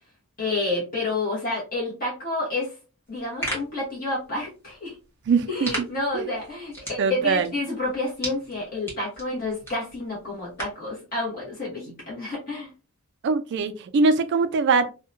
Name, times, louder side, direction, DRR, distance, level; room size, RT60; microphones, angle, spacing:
voice 1, 0.4-2.7 3.1-5.0 5.5-12.7, left 2 dB, 40° left, 1.0 m, -29 dB
sound 1, 3.1-10.9, right 1 dB, 10° left, 1.1 m, -38 dB
voice 2, 5.3-5.7 6.1-6.3 7.0-7.5 13.2-14.9, right 4 dB, 55° right, 0.3 m, -22 dB
2.7 x 2.1 x 2.5 m
head